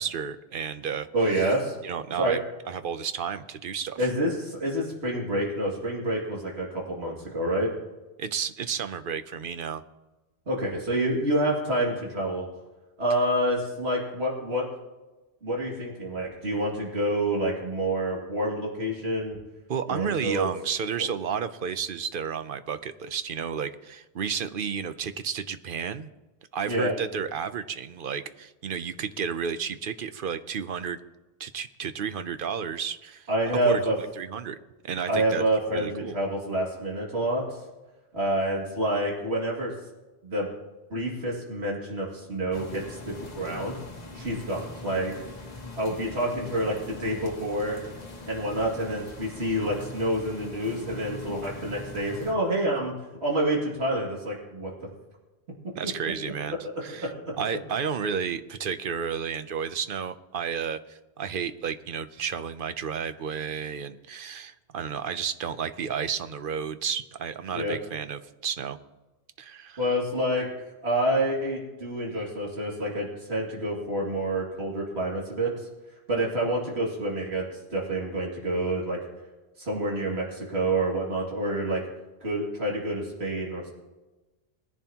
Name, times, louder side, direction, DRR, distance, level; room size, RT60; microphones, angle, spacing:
voice 1, 0.0-1.1 1.4-1.5 1.8-2.4 2.7-4.1 8.2-9.8 19.7-26.1 26.5-31.0 31.4-33.3 33.6-34.6 34.8-35.4 35.7-36.2 55.7-56.6 56.8-57.1 57.4-68.8 69.4-69.8, right 7 dB, 60° right, 11 dB, 0.8 m, -32 dB
voice 2, 1.1-1.8 2.2-2.4 4.0-7.7 10.5-12.5 13.0-14.7 15.4-19.4 19.9-20.5 21.0-21.1 26.7-26.9 33.3-34.0 35.1-37.4 38.1-39.7 40.2-40.5 40.9-43.8 44.1-45.1 45.8-47.8 48.3-52.9 53.2-54.7 55.8-55.9 56.6-57.1 67.5-67.8 69.8-70.5 70.8-75.5 76.1-79.0 79.6-81.8 82.2-83.7, right 1 dB, 80° right, -3 dB, 2.7 m, -28 dB
sound 1, 42.5-52.3, left 2 dB, 40° left, 1.5 m, -42 dB
20.0 x 10.5 x 2.9 m, 1.1 s
omnidirectional pair, 1.1 m